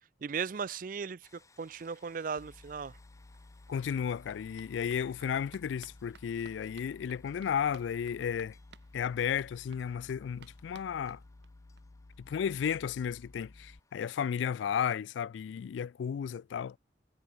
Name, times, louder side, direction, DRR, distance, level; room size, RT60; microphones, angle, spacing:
voice 1, 0.2-3.0, right 6 dB, 45° right, 0.4 m, -37 dB
sound 1, 1.2-14.5, left 3 dB, 15° left, 3.4 m, -67 dB
sound 2, 2.4-13.8, left 2 dB, 60° left, 0.9 m, -55 dB
sound 3, 3.0-3.1 3.3-11.8 12.1-12.2 12.5-12.6 12.8-12.9, right 5 dB, 70° right, 1.3 m, -60 dB
voice 2, 3.7-8.6 8.9-11.2 12.2-16.8, left 8 dB, 80° left, 0.3 m, -33 dB
head